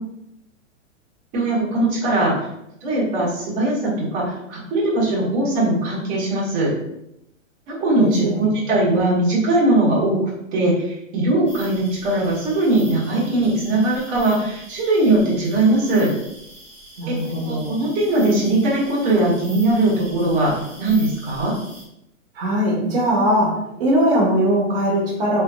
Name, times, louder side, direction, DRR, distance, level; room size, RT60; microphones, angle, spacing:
voice 1, 1.3-2.3 2.8-6.7 7.7-10.2 10.5-16.1 17.1-21.5, right 2 dB, 20° right, -7 dB, 1.0 m, -20 dB
voice 2, 8.0-8.5 8.9-9.0 17.0-17.8 22.3-25.4, equal, 45° right, -3 dB, 1.0 m, -20 dB
sound 1, 11.5-21.8, right 1 dB, 5° right, 1.4 m, -43 dB
3.2 x 3.0 x 2.2 m, 0.81 s
hypercardioid pair, 155°, 39 cm